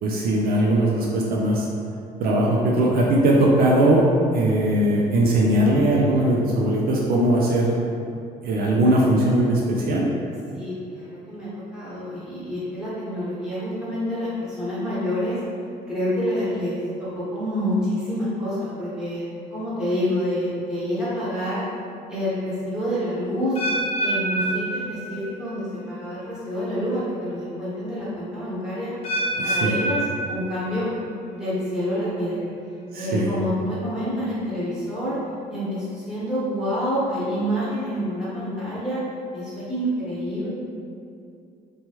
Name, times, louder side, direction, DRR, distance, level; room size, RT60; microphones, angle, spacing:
voice 1, 0.0-1.7 2.2-4.1 4.3-7.8 8.4-10.1 29.4-29.8 32.9-33.3, right 1 dB, 65° right, -3 dB, 0.4 m, -20 dB
voice 2, 10.5-15.4 15.9-19.2 19.5-21.6 22.1-23.6 24.0-28.9 29.4-30.9 31.3-32.5 33.0-35.2 35.5-39.0 39.3-40.5, equal, 5° right, -11 dB, 1.2 m, -27 dB
sound 1, 23.6-25.6 25.8-26.3 26.9-27.0 29.0-31.0 31.3-31.8 32.4-32.5, right 1 dB, 35° left, 0.6 m, -27 dB
2.9 x 2.3 x 2.9 m, 2.5 s
cardioid pair, 110°, 17 cm